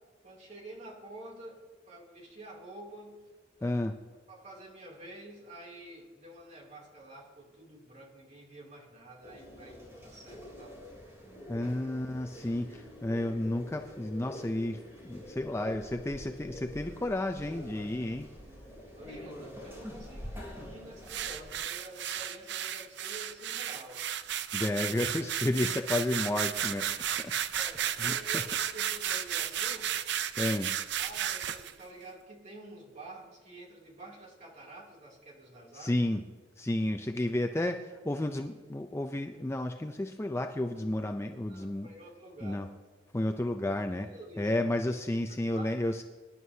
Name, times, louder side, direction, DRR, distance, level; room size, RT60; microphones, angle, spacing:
voice 1, 0.2-1.6 1.9-3.2 3.6-3.8 4.3-10.8 12.5-12.6 18.9-24.0 27.5-29.9 30.9-36.0 41.5-42.6 44.1-44.5 45.5-45.9, right 1 dB, 35° right, -3 dB, 2.8 m, -49 dB
voice 2, 3.6-4.0 11.5-18.3 24.5-27.3 28.0-28.2 30.4-30.7 35.7-36.2 36.6-41.9 42.4-42.7 43.1-44.1 44.4-46.0, left 1 dB, 15° left, 5 dB, 0.4 m, -32 dB
sound 1, 9.2-21.6, equal, 15° right, 3.3 m, -46 dB
sound 2, 21.1-31.7, right 10 dB, 60° right, 0.5 m, -33 dB
24.5 x 11.0 x 2.8 m, 1.4 s
head